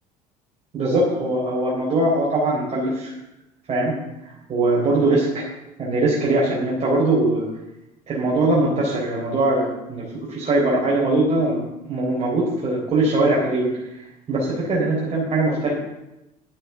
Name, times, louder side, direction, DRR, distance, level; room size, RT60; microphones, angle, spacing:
voice 1, 0.7-3.1 3.7-3.9 4.2-5.4 5.8-7.4 8.1-13.7 14.3-15.7, right 2 dB, 35° right, -6 dB, 4.0 m, -21 dB
11.0 x 7.8 x 7.0 m, 0.93 s
figure-of-eight pair, 65°, 20 cm